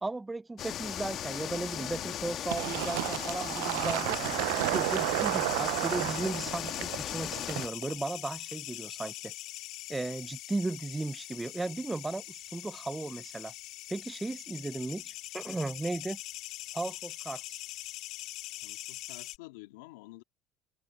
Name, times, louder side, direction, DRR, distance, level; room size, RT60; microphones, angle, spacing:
voice 1, 0.0-4.2 4.7-9.3 9.9-13.5 13.9-16.2 16.7-17.6, right 2 dB, 10° right, 0.5 m, -36 dB
sound 1, 0.6-7.7, left 10 dB, 45° left, 1.4 m, -37 dB
sound 2, 0.7-19.4, left 17 dB, 65° left, 2.6 m, -43 dB
Fill (with liquid), 2.5-7.9, right 23 dB, 85° right, 0.5 m, -32 dB
voice 2, 18.6-20.2, left 21 dB, 90° left, 2.4 m, -50 dB
supercardioid pair, 110°, 0 cm